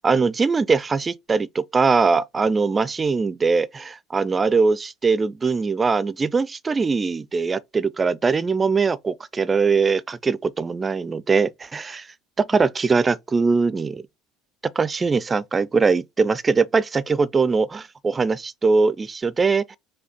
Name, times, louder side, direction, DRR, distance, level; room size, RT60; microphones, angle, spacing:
voice 1, 0.0-12.1 12.4-14.0 14.8-19.8, right 4 dB, 20° right, 0.4 m, -21 dB
4.8 x 2.2 x 3.7 m
figure-of-eight pair, 65°, 0 cm